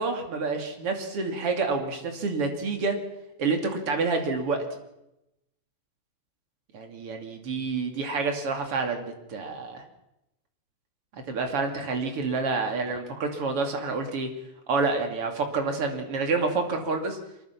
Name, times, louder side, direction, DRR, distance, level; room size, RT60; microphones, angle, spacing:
voice 1, 0.0-3.0 3.4-4.6 6.7-9.8 11.1-14.3 14.7-17.2, right 4 dB, 35° right, 4 dB, 2.7 m, -28 dB
24.0 x 22.0 x 6.0 m, 0.86 s
omnidirectional pair, 5.4 m